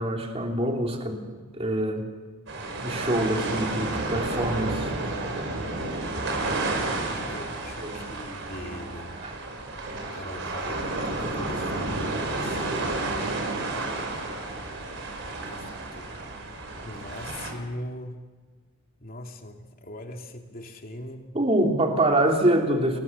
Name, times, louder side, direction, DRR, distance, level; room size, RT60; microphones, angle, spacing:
voice 1, 0.0-2.1 2.8-4.9 7.8-8.1 9.2-9.3 21.3-23.0, right 1 dB, 30° right, 2 dB, 3.2 m, -25 dB
sound 1, 2.5-17.5, right 2 dB, 65° right, 5.7 m, -31 dB
voice 2, 7.3-9.2 10.1-10.8 11.0-12.9 14.1-14.3 15.4-16.1 16.8-18.2 19.0-21.3, left 1 dB, 45° left, 3 dB, 2.7 m, -40 dB
30.0 x 20.0 x 7.0 m, 1.4 s
head